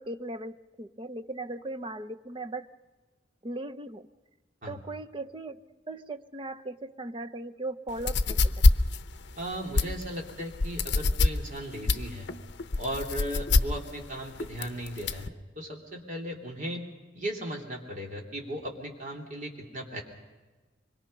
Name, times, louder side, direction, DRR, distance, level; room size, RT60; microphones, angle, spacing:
voice 1, 0.0-2.7 3.4-4.1 4.7-5.6 5.9-8.4, right 2 dB, 25° right, 9 dB, 0.7 m, -38 dB
sound 1, 7.9-15.3, left 3 dB, 65° left, 0.7 m, -25 dB
voice 2, 9.4-12.3 12.8-15.3 15.5-16.8 17.1-20.0, equal, 45° right, 0 dB, 3.2 m, -36 dB
25.0 x 22.0 x 5.5 m, 1.3 s
head